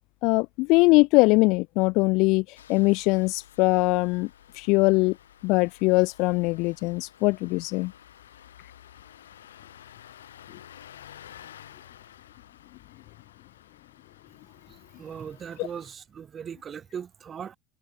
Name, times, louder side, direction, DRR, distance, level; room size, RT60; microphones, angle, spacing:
voice 1, 0.2-4.3 4.6-5.2 5.4-7.9 15.6-15.7, left 25 dB, 55° left, 0.7 m, -22 dB
Engine starting, 2.6-16.0, left 10 dB, 70° left, 3.4 m, -51 dB
voice 2, 15.0-17.6, right 7 dB, 30° right, 2.8 m, -38 dB
figure-of-eight pair, 75°, 0 cm